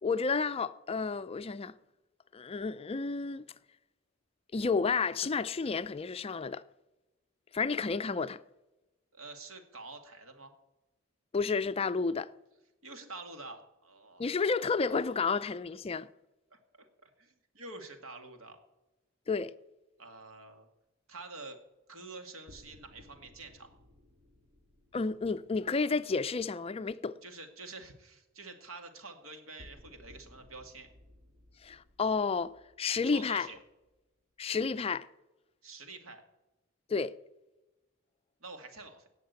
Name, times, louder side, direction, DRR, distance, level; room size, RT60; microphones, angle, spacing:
voice 1, 0.0-1.7 2.3-3.5 4.5-6.6 7.5-8.4 11.3-12.3 14.2-16.1 19.3-19.5 24.9-27.2 31.6-32.5 32.8-33.5 34.4-35.1 36.9-37.1, left 4 dB, 30° left, 0.4 m, -31 dB
voice 2, 9.1-10.5 12.8-14.3 16.5-18.6 20.0-20.7 21.1-21.6 21.9-23.7 27.2-30.9 33.1-33.6 35.6-36.2 38.4-39.1, right 3 dB, 85° right, 2.2 m, -47 dB
High Tension One Beat Sequence, 22.5-26.7 29.6-34.2, left 1 dB, 45° right, 2.1 m, -59 dB
17.5 x 6.5 x 8.2 m
head